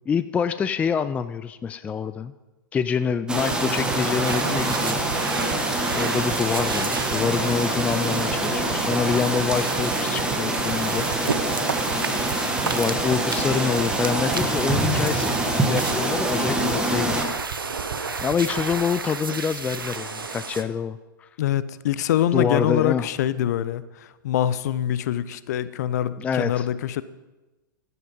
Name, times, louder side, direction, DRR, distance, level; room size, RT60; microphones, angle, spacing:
voice 1, 0.1-2.3 2.7-5.0 5.9-11.5 12.7-17.2 18.2-21.3 22.3-23.1 26.2-26.7, left 6 dB, 10° left, 13 dB, 0.4 m, -26 dB
sound 1, 3.3-17.2, right 2 dB, 5° right, 2.0 m, -25 dB
sound 2, 3.4-18.8, right 12 dB, 45° right, 1.7 m, -35 dB
sound 3, 4.2-20.6, right 5 dB, 75° right, 1.1 m, -33 dB
voice 2, 21.4-27.0, left 11 dB, 50° left, 16 dB, 0.7 m, -24 dB
15.0 x 11.0 x 5.4 m, 1.1 s
figure-of-eight pair, 105°, 12 cm